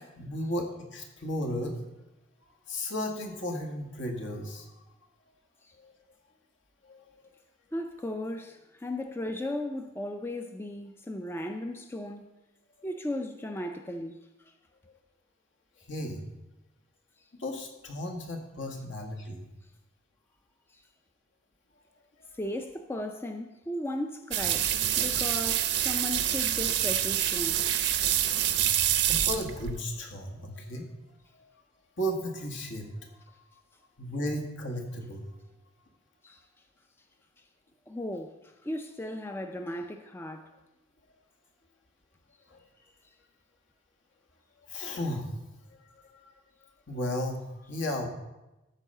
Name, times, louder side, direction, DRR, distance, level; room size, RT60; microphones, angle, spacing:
voice 1, 0.2-1.8 2.7-4.7 5.8-5.9 6.8-7.3 15.8-16.2 17.4-19.4 22.2-22.4 29.0-30.9 32.0-33.2 34.0-35.3 42.5-42.6 44.7-45.3 45.7-45.8 46.9-48.1, equal, 70° left, 1.8 m, -34 dB
voice 2, 7.7-12.3 12.8-14.2 14.5-14.6 17.2-17.3 20.7-20.8 22.3-27.6 36.2-36.4 37.9-40.5, left 1 dB, 10° left, 0.4 m, -36 dB
sound 1, 24.3-29.8, right 11 dB, 60° right, 0.7 m, -27 dB
13.0 x 4.6 x 6.6 m
head